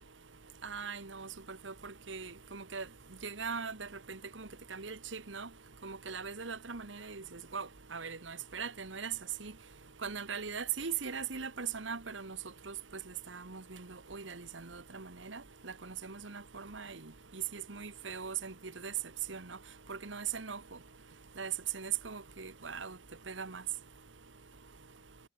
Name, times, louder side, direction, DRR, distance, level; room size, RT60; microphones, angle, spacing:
voice 1, 0.6-2.8 3.2-5.5 5.8-9.1 9.4-9.5 10.0-12.4 12.7-12.8 13.3-17.0 17.3-18.5 18.8-18.9 19.3-19.6 19.9-20.6 21.4-23.0 23.3-23.6, right 6 dB, 75° right, 1.6 m, -40 dB
head